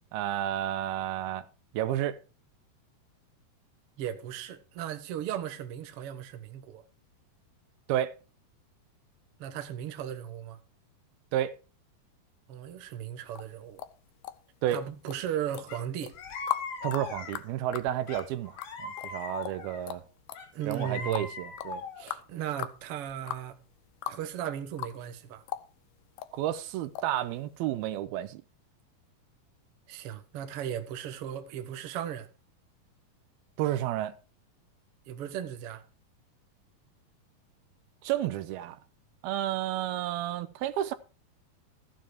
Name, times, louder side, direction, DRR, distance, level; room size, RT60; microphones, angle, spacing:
voice 1, 0.1-1.5 1.7-2.2 7.9-8.1 11.3-11.5 14.6-14.8 16.8-20.0 20.7-22.2 26.3-28.4 33.6-34.2 38.0-38.8 39.2-40.9, right 12 dB, 85° right, 2.7 m, -31 dB
voice 2, 4.0-6.8 9.4-10.6 12.5-13.8 14.7-16.1 20.5-21.3 22.3-23.6 24.1-25.5 29.9-32.3 35.1-35.8, right 10 dB, 65° right, 1.4 m, -36 dB
sound 1, 13.4-14.8 15.1-15.7 16.0-24.3 24.5-25.2 25.5-26.3 27.0-27.1 27.5-27.6, left 13 dB, 80° left, 2.6 m, -38 dB
sound 2, 15.7-15.8 16.2-17.5 18.1-19.8 20.4-22.1, left 4 dB, 65° left, 3.3 m, -39 dB
14.5 x 7.3 x 4.7 m
omnidirectional pair, 4.3 m